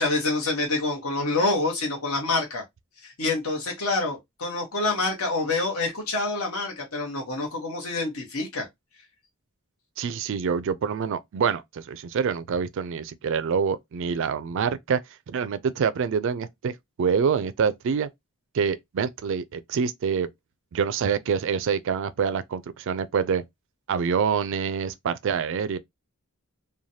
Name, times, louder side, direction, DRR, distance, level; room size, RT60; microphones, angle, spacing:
voice 1, 0.0-2.6 3.0-8.7, left 3 dB, 70° left, 1.0 m, -27 dB
voice 2, 10.0-15.0 15.3-18.1 18.5-20.3 20.7-23.4 23.9-25.8, right 6 dB, 60° right, 0.3 m, -26 dB
3.2 x 2.2 x 2.6 m
head